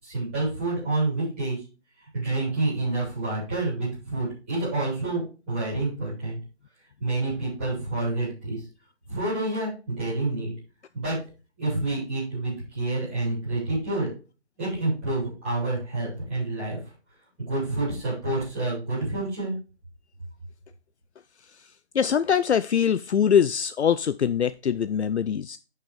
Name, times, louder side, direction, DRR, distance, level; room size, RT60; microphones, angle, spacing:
voice 1, 0.0-1.6 2.1-6.4 7.0-8.6 9.1-10.5 10.9-11.2 11.6-14.1 14.6-16.8 17.5-19.6, right 2 dB, 5° right, 3.3 m, -28 dB
voice 2, 21.9-25.6, left 8 dB, 75° left, 0.5 m, -23 dB
7.5 x 5.6 x 4.8 m
figure-of-eight pair, 180°, 34 cm